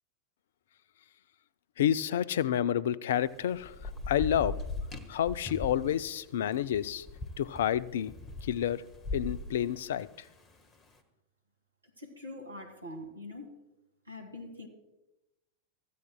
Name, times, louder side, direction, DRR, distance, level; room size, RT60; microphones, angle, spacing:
voice 1, 1.8-3.7 4.1-4.6 5.1-7.0 7.4-8.1 8.4-8.8 9.1-10.1, left 10 dB, 60° left, 18 dB, 0.5 m, -29 dB
Thunder / Rain, 3.1-10.7, left 3 dB, 25° left, 1.4 m, -40 dB
voice 2, 12.0-13.6 14.1-14.7, left 1 dB, 80° right, 4 dB, 2.1 m, -44 dB
24.5 x 14.5 x 2.2 m, 0.99 s
figure-of-eight pair, 90°, 0 cm